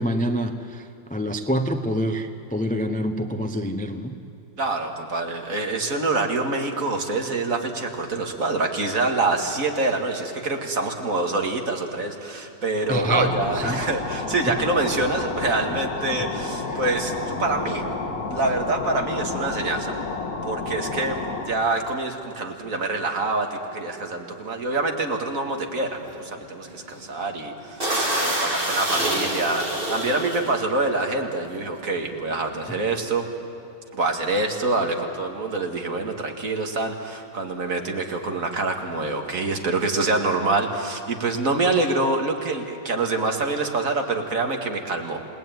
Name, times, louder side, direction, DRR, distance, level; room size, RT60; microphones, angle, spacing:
voice 1, 0.0-4.2 12.9-13.8 14.4-14.6 16.7-16.8, equal, 10° left, 7 dB, 0.5 m, -26 dB
voice 2, 4.6-17.9 18.3-20.0 20.4-27.9 28.1-33.3 33.9-45.2, right 3 dB, 50° right, 3 dB, 2.3 m, -26 dB
sound 1, 12.8-21.7, left 3 dB, 50° left, 2.3 m, -31 dB
sound 2, 24.8-25.0 25.5-25.7 26.0-26.2 26.7-27.0 27.3-27.4 27.8-30.6 31.4-31.6 31.8-33.0, right 1 dB, 30° right, 3.9 m, -27 dB
29.0 x 19.0 x 9.3 m, 2.8 s
omnidirectional pair, 2.0 m